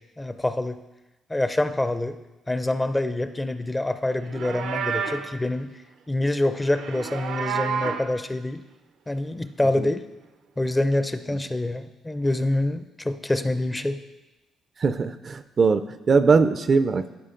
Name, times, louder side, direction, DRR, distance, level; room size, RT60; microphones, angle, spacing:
voice 1, 0.2-0.8 1.3-2.2 2.5-5.7 6.1-8.6 9.1-10.0 10.6-14.0, left 1 dB, 15° left, 10 dB, 0.5 m, -26 dB
Livestock farm animals working animals, 4.2-5.3 6.6-8.1, right 7 dB, 85° right, 0.7 m, -30 dB
voice 2, 14.8-17.2, right 4 dB, 45° right, 12 dB, 0.4 m, -21 dB
12.5 x 5.0 x 3.8 m, 1.0 s
cardioid pair, 90°, 0 cm